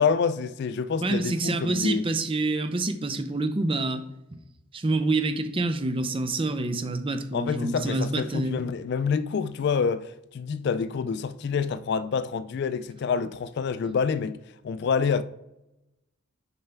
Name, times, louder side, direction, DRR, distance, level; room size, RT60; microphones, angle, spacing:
voice 1, 0.0-2.1 7.3-14.4 14.6-15.2, left 6 dB, 55° left, 0.3 m, -27 dB
voice 2, 1.0-4.0 4.7-8.6, right 2 dB, 25° right, 0.5 m, -27 dB
6.8 x 5.5 x 3.4 m
head